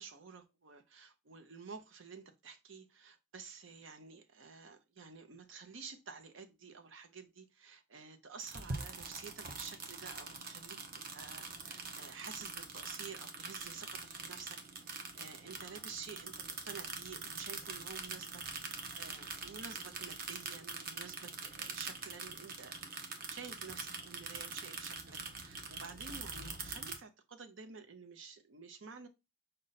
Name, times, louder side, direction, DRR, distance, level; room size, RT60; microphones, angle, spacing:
voice 1, 0.0-14.6 14.9-22.7 23.3-29.1, right 5 dB, 90° right, 0.7 m, -51 dB
sound 1, 8.4-27.0, right 4 dB, 50° right, 0.7 m, -44 dB
5.1 x 2.2 x 4.0 m
head